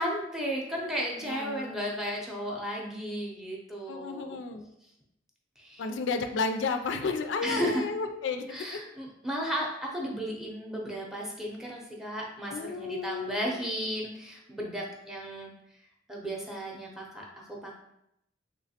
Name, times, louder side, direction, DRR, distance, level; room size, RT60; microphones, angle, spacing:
voice 1, 0.0-4.4 5.6-5.8 7.4-7.8 8.5-15.5 16.1-17.7, equal, 5° right, -1 dB, 0.6 m, -34 dB
voice 2, 1.2-1.9 3.9-4.7 5.8-8.8 12.5-13.6, left 4 dB, 80° left, 6 dB, 0.3 m, -32 dB
3.2 x 3.1 x 2.8 m, 0.81 s
head